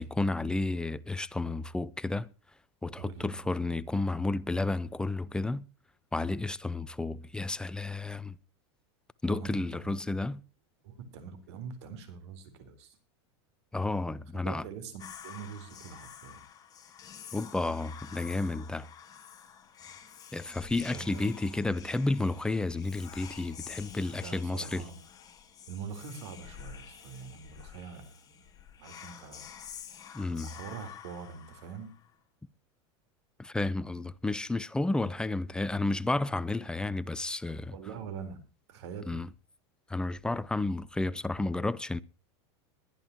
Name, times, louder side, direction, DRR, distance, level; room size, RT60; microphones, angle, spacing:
voice 1, 0.0-2.3 2.8-5.6 6.1-8.4 9.2-10.4 13.7-14.7 17.3-18.9 20.3-24.8 30.1-30.5 33.4-37.8 39.1-39.3 39.9-42.0, left 2 dB, 5° left, 0.6 m, -31 dB
voice 2, 3.0-3.4 9.3-10.0 10.8-13.0 14.4-16.4 20.9-21.3 24.2-25.0 25.7-28.2 28.8-29.5 30.4-31.9 37.7-38.4 38.7-39.2, right 6 dB, 75° right, 4.2 m, -44 dB
Whispering, 15.0-32.1, left 8 dB, 25° left, 2.7 m, -49 dB
21.5 x 11.0 x 3.0 m
supercardioid pair, 135°, 14 cm